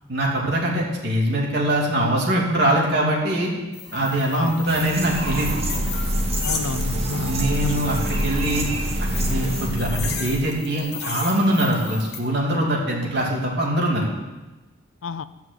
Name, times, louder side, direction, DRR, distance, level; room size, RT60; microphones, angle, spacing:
voice 1, 0.1-3.5 3.9-5.6 7.3-8.7 9.0-14.1, right 1 dB, 50° right, -3 dB, 2.7 m, -23 dB
sound 1, 3.7-12.2, left 6 dB, 50° left, 1.5 m, -36 dB
sound 2, 4.7-9.7, right 3 dB, 30° right, 1.5 m, -33 dB
Train, 4.8-10.6, equal, 65° right, 1.6 m, -26 dB
voice 2, 6.4-8.1 15.0-15.2, left 4 dB, 70° left, 14 dB, 0.5 m, -31 dB
13.0 x 5.9 x 8.4 m, 1.1 s
head